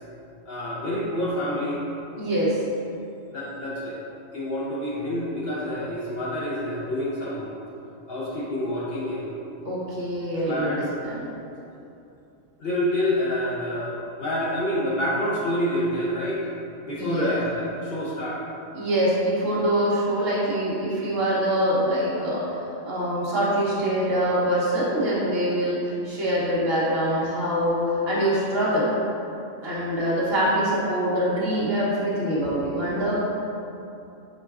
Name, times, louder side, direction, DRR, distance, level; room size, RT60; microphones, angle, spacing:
voice 1, 0.5-1.9 3.3-4.0 4.3-7.5 8.1-9.4 10.4-10.9 12.6-16.5 16.8-18.4, left 1 dB, 55° left, -7 dB, 0.8 m, -28 dB
voice 2, 2.2-2.6 9.6-11.2 17.0-17.3 18.7-22.4 22.8-28.9 29.6-33.2, equal, 50° right, -8 dB, 1.0 m, -24 dB
4.6 x 4.3 x 2.4 m, 2.7 s
omnidirectional pair, 1.4 m